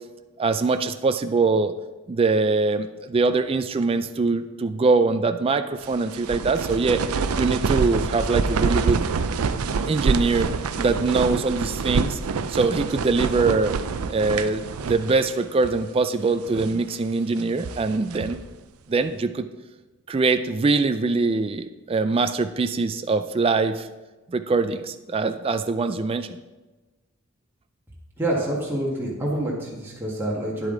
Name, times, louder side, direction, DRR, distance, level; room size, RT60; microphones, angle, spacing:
voice 1, 0.4-1.7 2.1-7.0 7.4-9.0 9.9-10.5 10.8-12.2 12.5-13.7 14.1-18.4 18.9-19.5 20.1-23.9 24.3-26.4, right 3 dB, 25° right, 9 dB, 0.3 m, -23 dB
sound 1, 5.8-15.3 15.6-15.7 16.3-16.8 17.4-18.5, right 5 dB, 85° right, 0.5 m, -26 dB
voice 2, 28.2-30.7, right 1 dB, 10° right, -6 dB, 1.8 m, -27 dB
10.0 x 8.1 x 3.9 m, 1.2 s
head